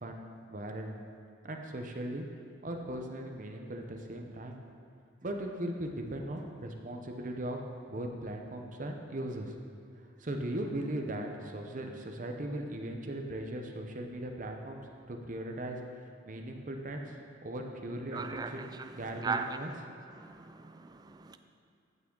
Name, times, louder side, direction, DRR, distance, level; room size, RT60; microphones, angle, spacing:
voice 1, 0.0-0.9 1.4-2.3 2.6-4.6 5.2-7.6 7.9-9.5 10.2-14.8 15.1-15.8 16.2-17.1 17.4-19.7, right 1 dB, 45° right, 3 dB, 0.8 m, -38 dB
voice 2, 18.1-19.6 20.1-21.4, right 4 dB, 20° right, 8 dB, 0.4 m, -38 dB
15.0 x 6.0 x 3.9 m, 2.3 s
head